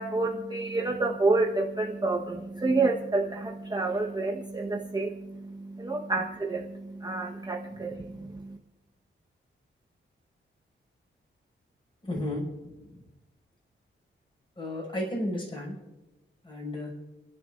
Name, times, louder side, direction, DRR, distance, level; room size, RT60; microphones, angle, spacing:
voice 1, 0.0-8.3, right 3 dB, 20° right, -1 dB, 1.3 m, -29 dB
voice 2, 12.0-12.5 14.6-15.7 16.4-16.9, left 1 dB, 25° left, -1 dB, 6.2 m, -33 dB
30.0 x 11.5 x 2.6 m, 1.0 s
wide cardioid pair, 125°, 20 cm